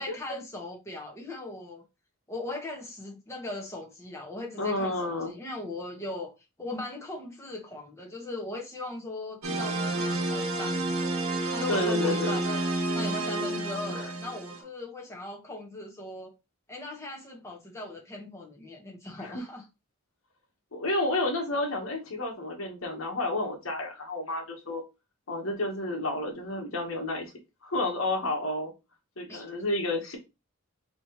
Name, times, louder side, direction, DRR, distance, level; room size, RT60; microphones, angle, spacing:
voice 1, 0.0-1.8 2.3-6.3 6.6-11.2 11.5-16.3 16.7-19.6 29.3-29.5, left 2 dB, 15° left, 1.2 m, -39 dB
voice 2, 4.6-5.3 11.7-12.4 13.9-14.1 19.2-19.4 20.7-24.8 25.3-27.3 27.6-28.7 29.2-30.2, left 2 dB, 70° left, 1.4 m, -30 dB
sound 1, 9.4-14.6, right 2 dB, 90° right, 1.2 m, -30 dB
4.3 x 3.1 x 3.0 m
head